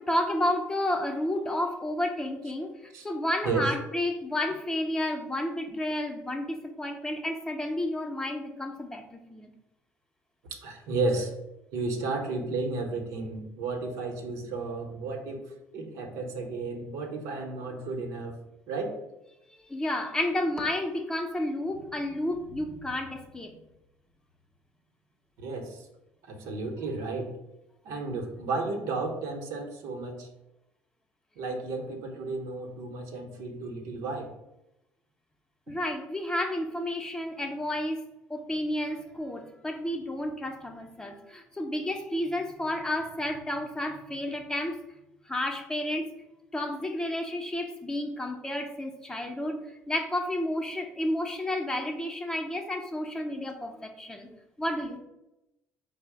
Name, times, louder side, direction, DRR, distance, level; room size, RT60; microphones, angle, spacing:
voice 1, 0.0-9.5 19.7-23.5 35.7-38.0 38.3-44.8 45.3-46.1 46.5-55.0, left 1 dB, 10° left, 3 dB, 0.6 m, -31 dB
voice 2, 10.5-11.3 11.7-18.4 18.7-19.0 25.4-25.9 26.3-27.3 27.8-30.3 31.4-34.3, right 3 dB, 80° right, 2 dB, 0.8 m, -33 dB
4.7 x 2.0 x 4.6 m, 0.91 s
cardioid pair, 105°, 6 cm